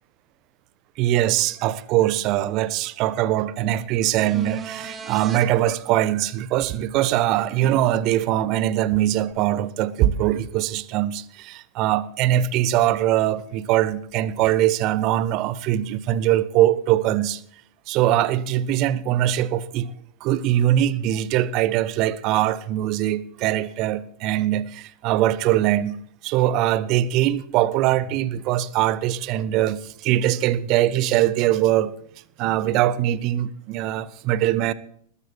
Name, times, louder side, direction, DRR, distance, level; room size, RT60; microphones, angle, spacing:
voice 1, 1.0-17.4 17.9-19.9 20.2-26.0 26.2-31.9 32.4-34.7, right 13 dB, 40° right, 1.2 m, -22 dB
sound 1, 4.2-5.4 9.3-9.4, right 6 dB, 20° right, 2.4 m, -35 dB
20.0 x 14.0 x 4.6 m
figure-of-eight pair, 90°, 0 cm